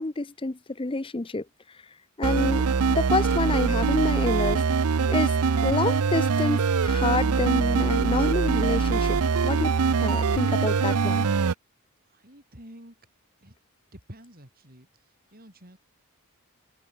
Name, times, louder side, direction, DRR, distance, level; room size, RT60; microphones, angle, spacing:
voice 1, 0.0-1.4 2.2-4.6 5.1-5.4 5.6-9.2 9.4-9.7 10.0-11.3, left 3 dB, 25° left, 0.7 m, -28 dB
sound 1, 2.2-11.5, right 5 dB, 80° right, 0.6 m, -23 dB
voice 2, 12.1-13.0 13.4-13.5 13.9-15.8, equal, 40° right, 7.3 m, -49 dB
head